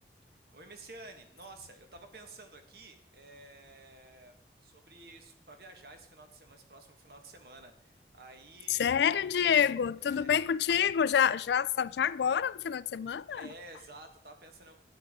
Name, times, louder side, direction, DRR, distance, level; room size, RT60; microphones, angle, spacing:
voice 1, 0.5-9.2 10.0-10.3 13.3-14.8, right 2 dB, 60° right, 1.4 m, -52 dB
voice 2, 8.7-13.5, left 8 dB, 75° left, 0.3 m, -27 dB
12.5 x 9.1 x 3.6 m
head